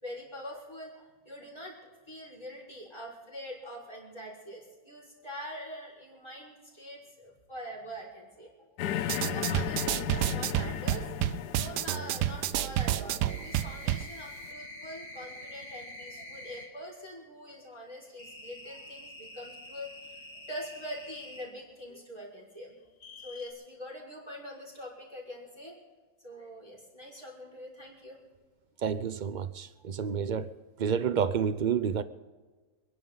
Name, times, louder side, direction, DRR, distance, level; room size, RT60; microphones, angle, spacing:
voice 1, 0.0-8.8 9.3-11.1 11.6-22.7 23.2-25.7 26.2-28.2, equal, 15° left, 5.7 m, -44 dB
sound 1, 8.8-14.4, left 11 dB, 80° left, 1.2 m, -36 dB
sound 2, 9.0-14.1, right 13 dB, 85° right, 1.2 m, -30 dB
sound 3, 13.2-16.7 18.2-21.5 23.0-23.5, left 1 dB, 60° left, 3.0 m, -46 dB
voice 2, 28.8-30.5 30.8-32.0, right 7 dB, 60° right, 0.4 m, -29 dB
28.0 x 11.0 x 4.0 m
omnidirectional pair, 1.7 m